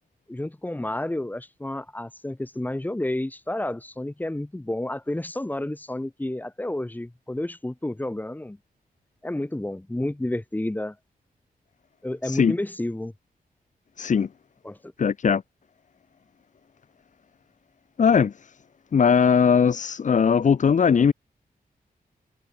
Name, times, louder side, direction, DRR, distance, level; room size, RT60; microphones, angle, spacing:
voice 1, 0.3-8.6 9.2-11.0 12.0-13.1 14.6-14.8, left 1 dB, 10° left, 5.8 m, -30 dB
voice 2, 12.2-12.5 14.0-14.3 15.0-15.4 18.0-18.5 18.9-21.1, left 6 dB, 55° left, 1.2 m, -19 dB
wide cardioid pair, 130°, 15 cm